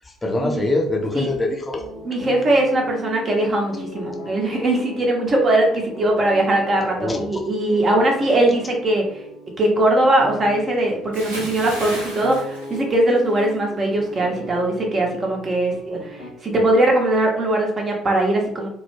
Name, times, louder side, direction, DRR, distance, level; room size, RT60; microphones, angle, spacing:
voice 1, 0.2-1.8 7.0-7.4, left 2 dB, 20° left, 0 dB, 0.6 m, -23 dB
sound 1, 1.7-16.3, left 2 dB, 60° left, 0.6 m, -37 dB
voice 2, 2.0-9.2 9.6-18.7, right 1 dB, 35° right, 0 dB, 0.8 m, -20 dB
Bathtub (filling or washing) / Splash splatter, 11.1-13.6 13.9-14.2, right 1 dB, 80° right, 0.6 m, -35 dB
2.2 x 2.0 x 3.1 m, 0.75 s
figure-of-eight pair, 50°, 0 cm